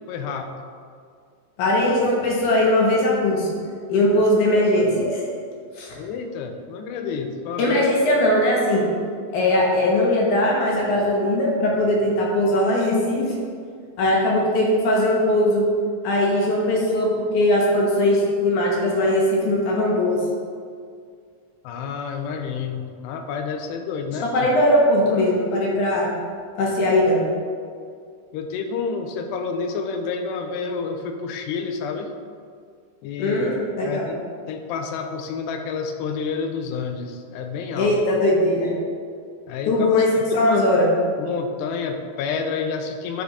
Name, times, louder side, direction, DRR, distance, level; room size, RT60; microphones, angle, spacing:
voice 1, 0.1-0.5 6.0-7.8 21.6-24.5 28.3-32.1 33.0-33.5 33.8-34.2 34.5-38.0 39.5-39.9 40.4-40.6 41.2-43.2, left 5 dB, 90° left, 5 dB, 2.7 m, -29 dB
voice 2, 1.6-3.5 3.9-5.2 5.8-6.0 7.6-8.8 9.3-13.3 14.0-15.6 16.0-17.1 17.3-20.2 24.3-26.1 26.6-27.2 33.2-34.0 37.8-38.7 39.7-40.1 40.3-40.9, left 1 dB, 65° left, -3 dB, 2.2 m, -20 dB
10.5 x 4.3 x 4.1 m, 2.2 s
omnidirectional pair, 4.8 m